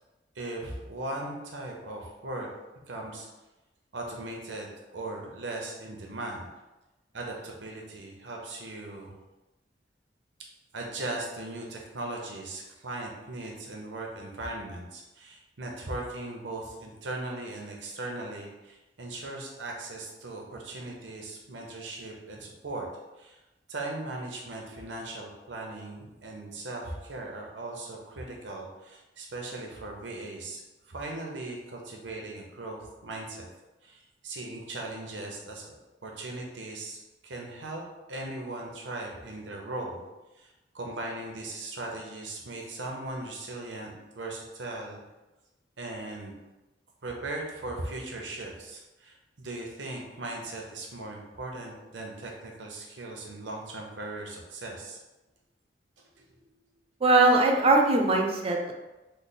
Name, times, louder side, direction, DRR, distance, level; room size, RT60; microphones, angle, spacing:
voice 1, 0.4-2.5 2.9-3.3 3.9-6.5 7.1-9.2 10.7-22.9 23.2-23.4 23.7-33.5 33.8-37.8 38.1-40.0 40.4-40.5 40.7-45.0 45.8-46.3 47.0-55.0 56.2-56.3 56.5-56.6, right 2 dB, 90° right, 0 dB, 0.7 m, -38 dB
voice 2, 57.0-58.7, right 2 dB, 35° right, 1 dB, 0.4 m, -21 dB
3.2 x 2.0 x 4.0 m, 1.1 s
head